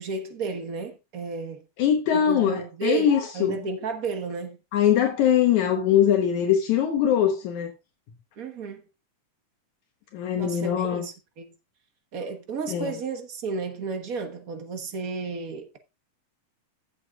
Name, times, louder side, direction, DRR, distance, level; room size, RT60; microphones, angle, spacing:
voice 1, 0.0-1.6 2.1-4.6 8.4-8.8 10.4-11.5 12.1-15.8, right 4 dB, 65° right, 0.8 m, -33 dB
voice 2, 1.8-3.6 4.7-7.7 10.1-11.1 12.7-12.9, left 9 dB, 75° left, 2.4 m, -22 dB
15.5 x 7.9 x 2.4 m
omnidirectional pair, 3.5 m